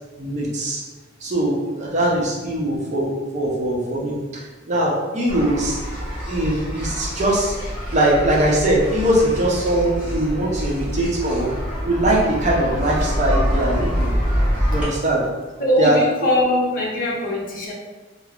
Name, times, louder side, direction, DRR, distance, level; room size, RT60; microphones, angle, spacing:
voice 1, 0.2-0.8 1.2-4.2 4.7-5.8 6.3-7.6 7.9-11.5 11.8-14.1 14.7-15.2 15.8-16.0, right 1 dB, 40° right, -4 dB, 0.7 m, -21 dB
sound 1, 5.3-14.8, equal, 5° right, 1.0 m, -25 dB
voice 2, 15.6-17.7, left 1 dB, 50° left, -3 dB, 0.6 m, -21 dB
3.4 x 2.0 x 2.4 m, 1.2 s
head